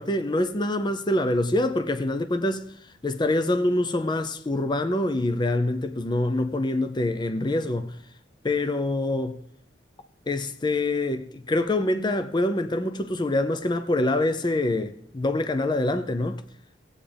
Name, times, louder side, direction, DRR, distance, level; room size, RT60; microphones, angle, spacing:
voice 1, 0.0-8.0 8.4-9.4 10.3-16.4, left 1 dB, 25° left, 0.6 m, -25 dB
17.0 x 8.7 x 3.4 m
head